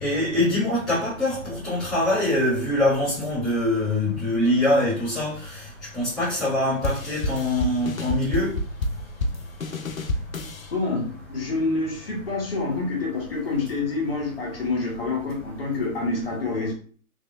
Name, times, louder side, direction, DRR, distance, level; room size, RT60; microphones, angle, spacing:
voice 1, 0.0-5.3 5.9-8.5, left 1 dB, ahead, -18 dB, 0.9 m, -23 dB
sound 1, 6.8-10.7, left 2 dB, 75° left, 0.7 m, -29 dB
voice 2, 10.7-16.7, left 3 dB, 45° left, -2 dB, 1.4 m, -27 dB
3.7 x 3.0 x 2.7 m, 0.43 s
figure-of-eight pair, 150°, 41 cm